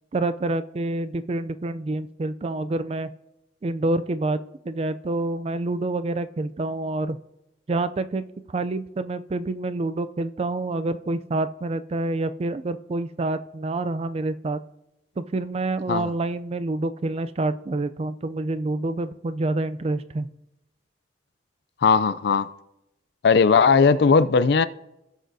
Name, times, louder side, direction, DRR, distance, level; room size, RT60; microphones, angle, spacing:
voice 1, 0.1-3.1 3.6-4.4 4.6-7.2 7.7-14.6 15.2-20.3, right 2 dB, 35° right, 13 dB, 0.4 m, -27 dB
voice 2, 21.8-22.5 23.2-24.7, left 5 dB, 65° left, 15 dB, 0.4 m, -18 dB
18.0 x 6.3 x 2.7 m, 0.89 s
head